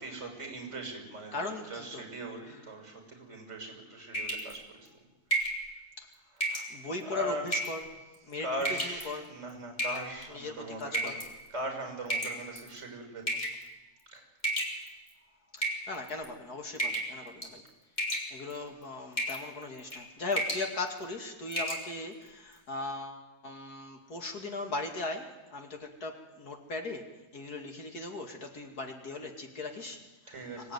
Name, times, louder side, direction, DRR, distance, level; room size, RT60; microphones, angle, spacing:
voice 1, 0.0-4.9 6.5-6.7 7.1-7.4 8.4-11.2 11.5-13.5 14.1-14.2 30.3-30.7, right 1 dB, 45° right, 3 dB, 6.6 m, -40 dB
voice 2, 1.3-2.6 6.0-6.1 6.7-9.3 10.3-11.2 15.5-17.6 18.3-30.7, left 2 dB, 65° left, 3 dB, 2.9 m, -39 dB
sound 1, 4.1-4.6 5.3-5.6 6.4-6.7 7.5-7.8 8.6-9.0 9.8-10.3 10.9-11.3 12.1-12.7 13.3-13.6 14.4-15.1 15.6-16.3 16.8-17.2 17.4-17.7 18.0-18.6 19.2-19.4 19.8-20.0 20.3-20.7 21.0-21.1 21.5-21.8, right 1 dB, 25° left, 4.2 m, -32 dB
25.0 x 17.5 x 9.5 m, 1.1 s
omnidirectional pair, 1.7 m